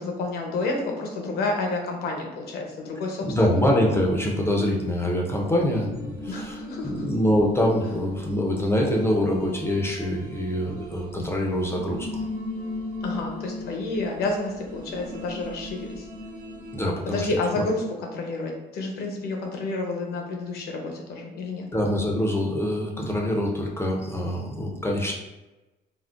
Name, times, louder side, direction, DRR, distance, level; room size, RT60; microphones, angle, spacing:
voice 1, 0.0-3.3 3.5-3.6 6.3-7.0 13.0-16.1 17.1-21.7, left 2 dB, 70° left, 1 dB, 0.7 m, -30 dB
voice 2, 3.2-12.1 16.7-17.3 17.6-17.7 21.7-25.1, left 1 dB, 15° left, -1 dB, 0.5 m, -25 dB
sound 1, 5.3-16.9, left 1 dB, 60° right, 1.0 m, -38 dB
3.6 x 2.0 x 2.4 m, 1.1 s
cardioid pair, 110°, 17 cm